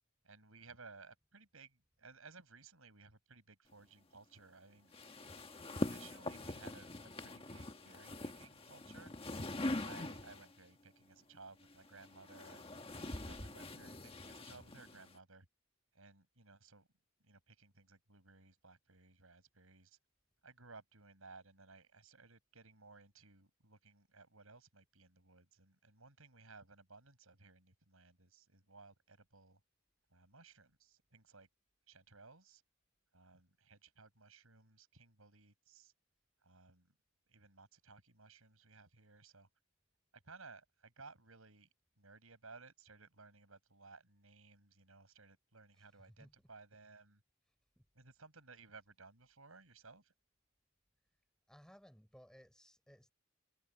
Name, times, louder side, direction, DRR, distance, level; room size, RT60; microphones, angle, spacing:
voice 1, 0.2-4.9 5.4-5.5 5.8-6.9 7.2-9.1 9.5-15.5 15.9-16.9 17.2-20.0 20.4-29.6 30.1-31.5 31.9-32.6 33.1-35.9 36.4-36.9 37.3-39.5 40.1-41.7 42.0-47.2 47.9-50.1, right 4 dB, 85° right, 6.2 m, -59 dB
sound 1, 4.9-10.6 11.6-15.2, left 1 dB, 25° left, 1.6 m, -43 dB
voice 2, 45.7-46.3 47.8-47.9 51.5-53.1, equal, 5° left, 3.9 m, -61 dB
head